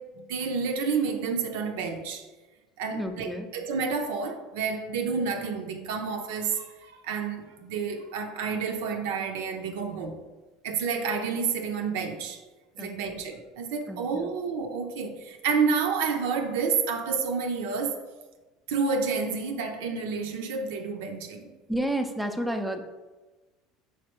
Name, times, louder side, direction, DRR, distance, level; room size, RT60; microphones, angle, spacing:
voice 1, 0.0-2.3 2.8-10.2 10.6-12.4 12.8-18.0 18.7-21.5, right 5 dB, 80° right, 0.5 m, -29 dB
voice 2, 2.9-3.5 12.8-12.9 13.9-14.0 21.7-22.8, right 1 dB, 5° right, 0.5 m, -30 dB
5.2 x 3.2 x 2.9 m
supercardioid pair, 95°, 0 cm